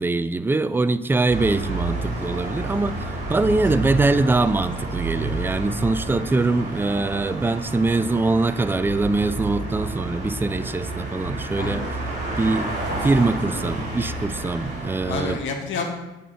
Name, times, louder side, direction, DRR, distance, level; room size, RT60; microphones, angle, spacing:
voice 1, 0.0-11.9 12.4-12.7 13.0-15.4, right 3 dB, 10° right, 13 dB, 0.3 m, -23 dB
sound 1, 1.3-15.4, right 2 dB, 35° right, 2.5 m, -30 dB
voice 2, 3.3-3.8 11.5-11.9 15.0-15.9, left 4 dB, 75° left, 4 dB, 1.1 m, -30 dB
6.7 x 4.3 x 6.1 m, 1.0 s
cardioid pair, 90°, 20 cm